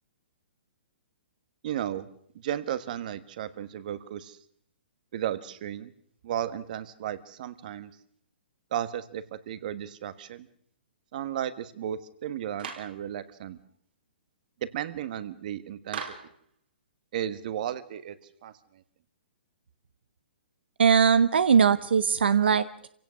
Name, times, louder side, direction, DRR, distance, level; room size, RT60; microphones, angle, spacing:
voice 1, 1.6-2.1 2.4-4.4 5.1-5.9 6.2-7.9 8.7-10.5 11.1-13.6 14.6-16.0 17.1-18.2 18.4-18.5, right 10 dB, 50° right, 14 dB, 1.4 m, -34 dB
Clapping, 12.6-13.0 15.9-16.4, right 6 dB, 70° right, 4.0 m, -37 dB
voice 2, 20.8-22.9, right 6 dB, 85° right, 14 dB, 0.8 m, -21 dB
26.5 x 17.0 x 6.4 m, 0.65 s
hypercardioid pair, 150°, 6 cm